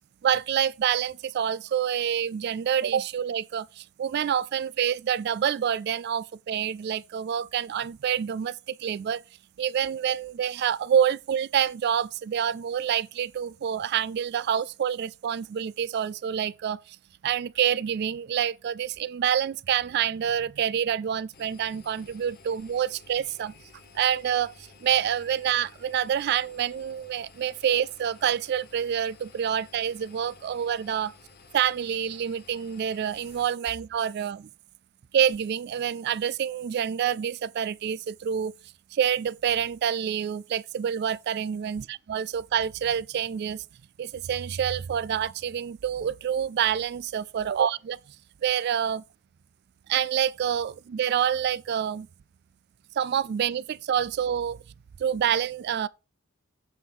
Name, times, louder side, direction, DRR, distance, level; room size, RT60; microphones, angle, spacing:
voice 1, 0.2-9.2 9.6-17.0 17.2-23.5 23.9-31.1 31.5-34.5 35.1-38.5 38.9-41.8 42.1-43.6 44.0-48.0 48.4-49.0 49.9-52.1 53.0-54.6 55.0-55.9, right 9 dB, 55° right, 0.3 m, -27 dB
Engine, 21.3-33.5, left 4 dB, 45° left, 1.0 m, -54 dB
7.9 x 4.7 x 5.3 m
head